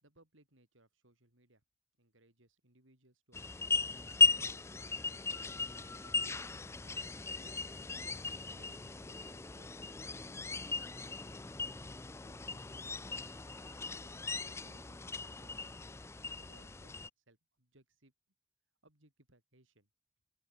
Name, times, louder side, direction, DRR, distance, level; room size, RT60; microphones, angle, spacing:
voice 1, 0.0-1.6 2.0-7.6 8.0-9.9 10.2-11.5 11.8-13.8 14.3-15.9 16.3-16.9 17.3-18.1 18.8-19.9, right 1 dB, 70° right, 4.7 m, -67 dB
sound 1, 3.3-17.1, left 4 dB, 15° left, 0.4 m, -36 dB
open air
head